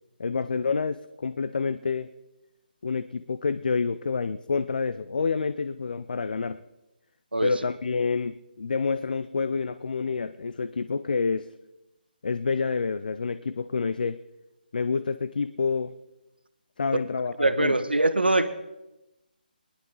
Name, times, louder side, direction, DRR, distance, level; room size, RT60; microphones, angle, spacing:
voice 1, 0.2-2.1 2.8-6.6 7.4-11.5 12.2-14.2 14.7-15.9 16.8-17.7, left 5 dB, 60° left, 13 dB, 0.5 m, -28 dB
voice 2, 17.4-18.5, right 2 dB, 85° right, 11 dB, 1.2 m, -22 dB
20.0 x 11.5 x 3.9 m, 0.96 s
figure-of-eight pair, 145°, 5 cm